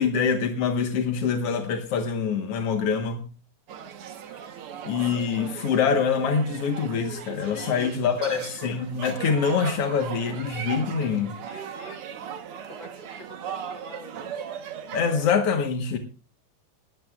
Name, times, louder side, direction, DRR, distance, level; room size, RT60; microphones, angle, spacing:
voice 1, 0.0-3.2 4.8-11.4 14.9-16.0, left 6 dB, 60° left, 5 dB, 1.6 m, -25 dB
sound 1, 3.7-15.3, right 8 dB, 85° right, 1.2 m, -38 dB
voice 2, 7.5-7.9 8.2-8.5 11.5-12.2 12.7-14.3, left 3 dB, 40° left, 5 dB, 2.0 m, -43 dB
19.5 x 14.0 x 2.4 m, 0.34 s
omnidirectional pair, 4.2 m